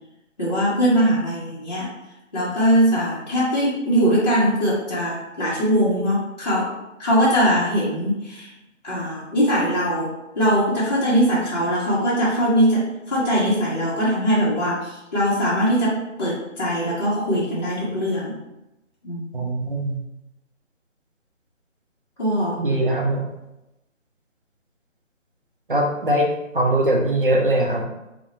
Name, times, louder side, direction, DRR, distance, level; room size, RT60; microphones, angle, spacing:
voice 1, 0.4-1.9 2.3-6.7 7.0-8.5 8.8-18.4 19.0-19.3 22.2-22.6, equal, 35° left, -9 dB, 0.6 m, -21 dB
voice 2, 19.3-20.0 22.6-23.3 25.7-27.8, right 1 dB, 45° right, 0 dB, 0.4 m, -21 dB
2.3 x 2.1 x 2.9 m, 0.94 s
figure-of-eight pair, 160°, 39 cm